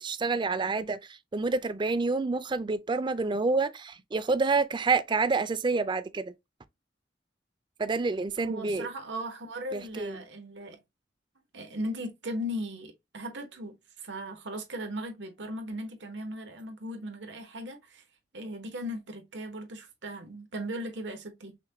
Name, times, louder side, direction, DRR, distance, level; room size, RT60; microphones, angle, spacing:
voice 1, 0.0-6.3 7.8-8.9 9.7-10.2, right 3 dB, 25° right, 0.4 m, -28 dB
voice 2, 8.4-10.8 11.5-18.0 18.3-21.6, equal, 90° right, 1.1 m, -38 dB
5.8 x 2.2 x 2.8 m
head